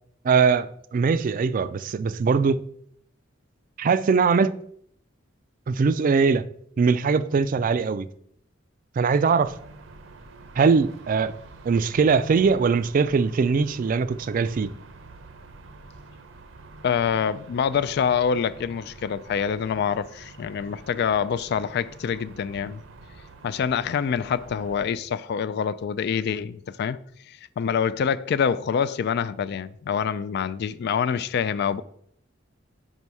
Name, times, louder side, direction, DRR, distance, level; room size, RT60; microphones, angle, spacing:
voice 1, 0.2-2.6 3.8-4.6 5.7-6.5 6.8-8.1 9.0-9.6 10.6-11.3 11.6-14.7, right 5 dB, 45° right, 0.3 m, -21 dB
sound 1, 9.4-24.9, right 3 dB, 75° right, 0.7 m, -47 dB
voice 2, 16.8-22.8 23.4-27.0 27.3-31.8, left 7 dB, 55° left, 0.3 m, -26 dB
5.5 x 5.2 x 4.7 m
head